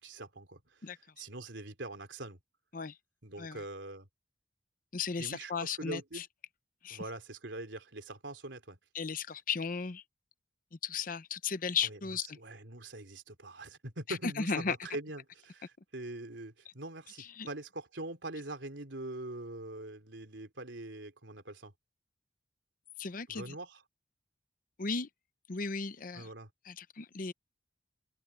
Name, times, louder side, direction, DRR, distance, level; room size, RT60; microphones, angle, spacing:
voice 1, 0.0-0.9 1.2-2.4 3.2-4.1 5.2-6.3 6.9-8.8 11.8-12.0 12.4-21.7 23.3-23.8 26.1-26.5, right 2 dB, 80° right, 3.3 m, -43 dB
voice 2, 4.9-6.3 6.8-7.0 8.9-10.0 10.7-12.4 14.1-14.8 17.2-17.5 23.0-23.5 24.8-25.1 25.5-26.3 26.6-27.3, left 5 dB, 45° left, 0.7 m, -35 dB
head